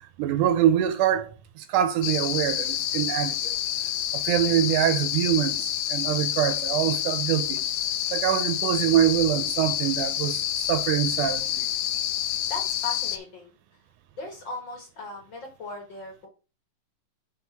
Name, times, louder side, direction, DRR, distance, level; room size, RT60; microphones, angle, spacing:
voice 1, 0.2-3.3 4.1-7.6 8.1-11.7, right 11 dB, 80° right, 2.1 m, -24 dB
sound 1, 2.0-13.2, left 11 dB, 75° left, 2.0 m, -28 dB
voice 2, 12.5-13.5 14.2-16.3, left 3 dB, 45° left, 1.8 m, -37 dB
5.8 x 4.4 x 5.6 m
omnidirectional pair, 3.8 m